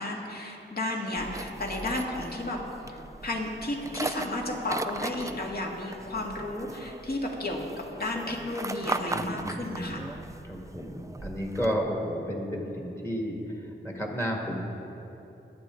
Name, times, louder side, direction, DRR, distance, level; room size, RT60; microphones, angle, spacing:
voice 1, 0.0-2.6 2.9-10.0, left 1 dB, 50° left, -1 dB, 2.1 m, -33 dB
sound 1, 1.2-11.7, right 2 dB, 15° right, 0.5 m, -38 dB
voice 2, 9.1-10.1 10.4-13.4 13.8-14.6, equal, 15° left, 0 dB, 1.8 m, -32 dB
22.0 x 8.5 x 3.8 m, 3.0 s
wide cardioid pair, 85°, 20 cm